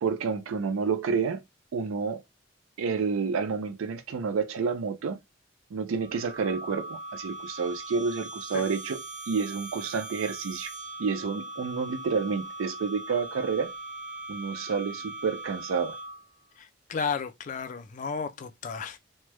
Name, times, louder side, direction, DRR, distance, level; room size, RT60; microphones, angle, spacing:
voice 1, 0.0-1.4 1.7-2.2 2.8-5.2 5.7-10.7 11.0-13.7 14.3-16.0, right 5 dB, 90° right, 0.4 m, -29 dB
sound 1, 6.0-16.4, right 2 dB, 35° right, 0.5 m, -40 dB
voice 2, 16.6-19.0, left 5 dB, 40° left, 0.4 m, -33 dB
3.1 x 2.2 x 3.0 m
head